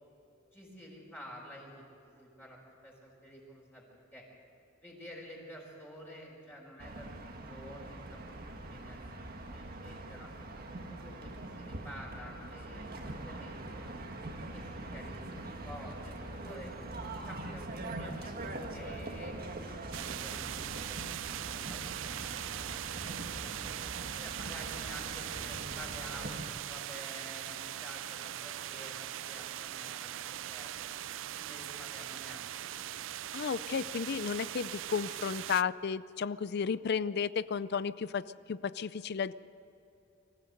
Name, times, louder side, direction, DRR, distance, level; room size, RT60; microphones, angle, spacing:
voice 1, 0.5-4.2 4.8-10.3 10.9-14.0 14.5-16.7 17.2-19.4 19.9-23.5 24.2-30.9 31.3-32.9 33.7-33.8, equal, 10° left, -4 dB, 4.8 m, -50 dB
sound 1, 6.8-26.4, right 2 dB, 50° right, 1.8 m, -43 dB
sound 2, 19.9-35.6, right 12 dB, 70° right, 0.4 m, -40 dB
voice 2, 33.3-39.3, left 6 dB, 55° left, 16 dB, 0.4 m, -33 dB
25.0 x 15.0 x 8.0 m, 2.9 s
head